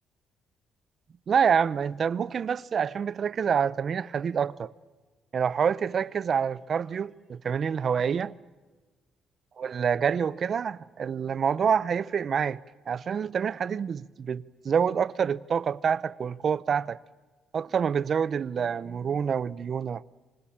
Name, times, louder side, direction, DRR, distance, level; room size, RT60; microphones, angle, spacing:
voice 1, 1.3-4.7 5.3-8.3 9.6-12.6 12.9-17.0 17.5-20.0, right 7 dB, 50° right, 0.7 m, -27 dB
26.0 x 23.5 x 8.8 m
cardioid pair, 90°, 0 cm